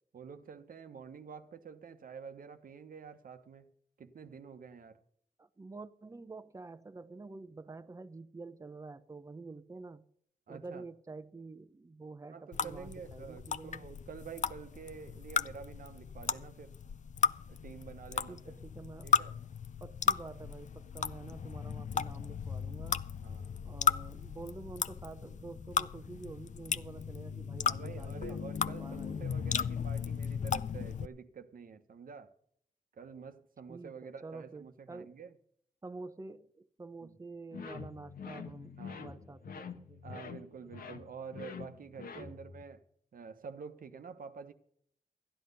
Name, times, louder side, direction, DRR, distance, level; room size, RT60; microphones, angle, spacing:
voice 1, 0.1-3.7 4.0-5.0 10.5-10.8 12.3-16.7 17.5-18.6 19.0-19.4 23.2-23.6 27.6-32.3 32.9-35.4 37.0-37.2 38.8-39.0 40.0-42.8 43.1-44.5, right 6 dB, 70° right, 1.0 m, -48 dB
voice 2, 5.4-10.0 10.5-13.9 18.3-19.1 19.8-23.0 23.6-29.3 33.7-35.2 35.8-40.2 42.2-42.4, right 3 dB, 20° right, 0.7 m, -48 dB
sound 1, 12.5-31.1, left 7 dB, 55° left, 0.5 m, -35 dB
sound 2, 37.5-42.7, left 6 dB, 80° left, 1.2 m, -46 dB
13.5 x 10.5 x 5.4 m
cardioid pair, 85°, 15 cm